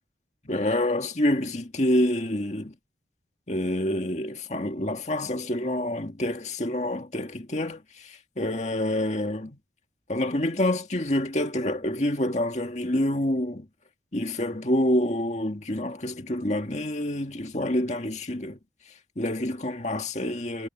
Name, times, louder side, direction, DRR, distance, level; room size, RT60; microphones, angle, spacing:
voice 1, 0.5-2.7 3.5-9.6 10.1-13.7 14.1-18.6 19.2-20.7, left 1 dB, 40° left, 2.0 m, -27 dB
head